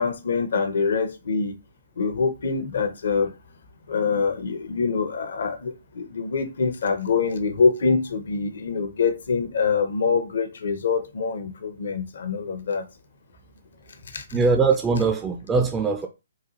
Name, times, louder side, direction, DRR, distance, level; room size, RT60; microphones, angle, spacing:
voice 1, 0.0-1.6 2.0-3.3 3.9-12.9 14.1-14.4, left 5 dB, 65° left, 0.7 m, -25 dB
voice 2, 14.3-16.1, right 4 dB, 15° right, 0.4 m, -21 dB
4.1 x 2.3 x 2.8 m
figure-of-eight pair, 130°, 0 cm